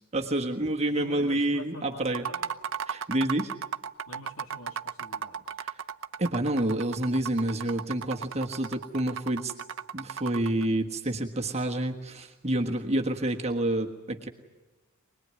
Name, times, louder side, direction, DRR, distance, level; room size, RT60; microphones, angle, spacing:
voice 1, 0.1-2.2 2.9-3.5 5.6-5.7 6.2-9.5 9.9-14.3, right 1 dB, 30° right, 1 dB, 1.4 m, -28 dB
voice 2, 0.9-2.5 4.1-5.5, left 3 dB, 75° left, 3 dB, 2.8 m, -45 dB
sound 1, 2.0-10.7, right 7 dB, 60° right, 0.8 m, -36 dB
24.5 x 20.0 x 9.7 m, 1.2 s
head